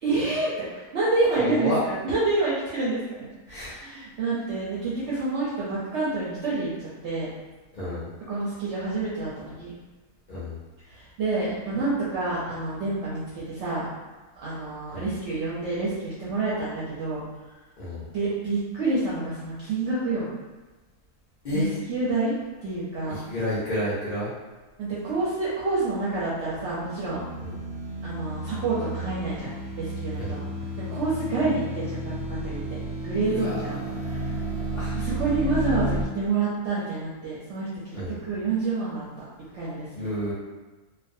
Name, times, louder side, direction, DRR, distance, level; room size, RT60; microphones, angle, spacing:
voice 1, 0.0-6.7 7.0-7.3 8.3-9.7 10.9-13.9 14.4-17.2 18.1-20.3 21.5-22.3 22.6-23.2 24.8-27.2 28.0-29.5 29.8-30.5 30.8-32.6 33.0-34.3 34.9-37.7 38.2-39.1 39.5-40.1, right 3 dB, 65° right, -8 dB, 0.7 m, -28 dB
voice 2, 1.4-1.8 3.5-3.8 7.7-8.1 10.3-10.6 14.9-15.1 17.8-18.1 21.4-21.7 23.1-24.3 27.4-27.5 30.2-30.4 33.2-35.1 37.9-38.2 39.9-40.3, left 1 dB, 60° left, -9 dB, 0.4 m, -31 dB
sound 1, 26.2-36.1, right 1 dB, 90° right, 1.1 m, -32 dB
2.4 x 2.1 x 2.5 m, 1.2 s
omnidirectional pair, 1.6 m